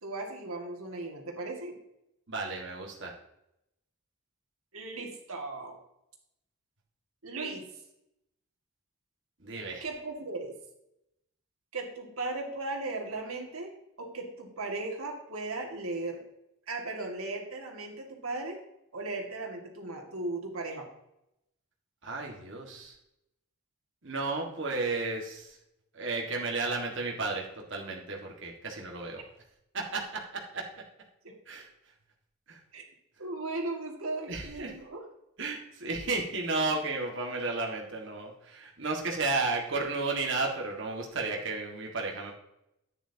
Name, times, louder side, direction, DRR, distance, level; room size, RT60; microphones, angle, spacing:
voice 1, 0.0-1.8 4.7-5.8 7.2-7.7 9.8-10.5 11.7-13.7 14.0-16.2 16.7-18.6 18.9-20.9 29.1-29.2 31.2-31.3 32.7-32.8 33.2-35.0, right 2 dB, 80° right, 2 dB, 2.0 m, -37 dB
voice 2, 2.3-3.1 9.4-9.9 22.0-22.9 24.0-25.6 25.9-29.2 29.7-30.8 31.5-31.7 32.5-32.6 34.3-34.7 35.4-42.3, right 3 dB, 55° right, 0 dB, 1.8 m, -33 dB
10.0 x 9.2 x 2.8 m, 0.84 s
head